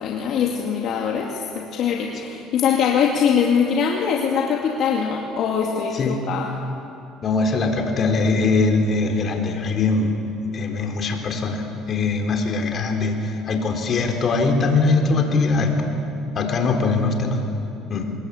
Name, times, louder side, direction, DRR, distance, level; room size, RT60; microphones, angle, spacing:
voice 1, 0.0-6.5 16.6-16.7, left 7 dB, 60° left, 0 dB, 2.4 m, -22 dB
voice 2, 7.2-10.1 10.4-15.9 16.3-17.4 17.9-18.1, left 3 dB, 45° left, 3 dB, 4.2 m, -21 dB
25.5 x 21.5 x 8.6 m, 2.7 s
supercardioid pair, 100°, 0 cm